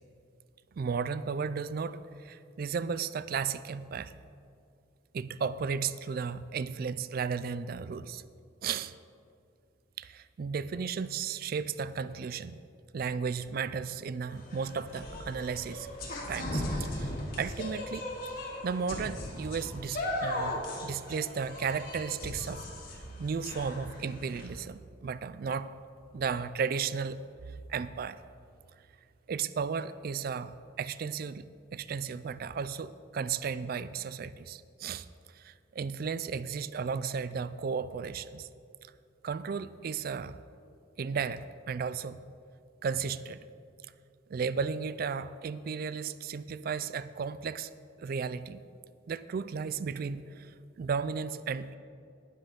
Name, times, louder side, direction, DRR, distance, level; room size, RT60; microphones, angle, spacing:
voice 1, 0.8-4.1 5.1-8.2 8.6-8.9 10.0-12.6 12.9-15.9 16.3-18.1 18.6-22.6 23.2-25.7 26.1-28.2 29.3-31.5 31.7-35.1 35.3-38.5 39.2-40.4 41.0-42.2 42.8-43.4 44.3-47.7 48.0-48.6 49.1-50.5 50.8-51.8, right 6 dB, 50° right, 15 dB, 0.3 m, -34 dB
sound 1, 14.3-24.5, left 1 dB, 50° left, 2.1 m, -37 dB
12.0 x 10.5 x 3.7 m, 2.4 s
head